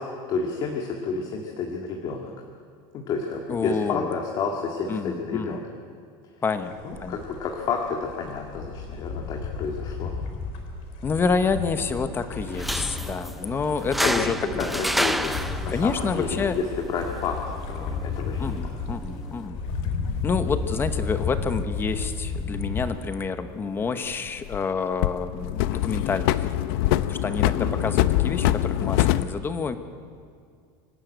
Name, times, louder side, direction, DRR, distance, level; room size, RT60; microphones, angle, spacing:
voice 1, 0.0-2.3 2.9-5.6 6.8-10.1 14.0-18.7 27.5-27.8, left 5 dB, 35° left, 1 dB, 1.9 m, -30 dB
voice 2, 3.5-4.1 4.9-5.6 6.4-7.2 11.0-14.8 15.7-16.6 18.4-19.6 20.2-26.6 27.1-29.8, left 5 dB, 15° left, 10 dB, 1.0 m, -28 dB
sound 1, 6.5-22.8, left 4 dB, 55° left, 3.8 m, -33 dB
sound 2, 12.5-19.5, equal, ahead, 0.5 m, -31 dB
sound 3, 18.5-18.6 20.2-21.5 23.7-24.7 25.0-29.2, left 14 dB, 70° left, 0.7 m, -24 dB
25.0 x 12.0 x 9.0 m, 2.2 s
cardioid pair, 165°, 13 cm